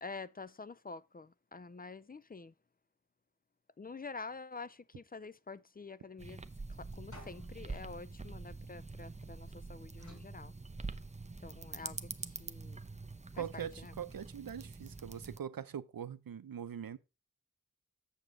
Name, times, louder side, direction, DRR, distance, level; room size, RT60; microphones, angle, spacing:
voice 1, 0.0-2.5 3.8-6.4 6.8-10.5 11.4-12.1 12.4-12.8 13.4-13.9, left 4 dB, 25° left, 0.4 m, -47 dB
sound 1, 6.2-15.4, right 3 dB, 20° right, 0.6 m, -46 dB
sound 2, 7.1-9.3 10.0-11.4, left 1 dB, 50° left, 5.7 m, -57 dB
voice 2, 13.4-17.0, right 8 dB, 80° right, 0.6 m, -42 dB
7.1 x 6.9 x 3.7 m
wide cardioid pair, 55°, 35 cm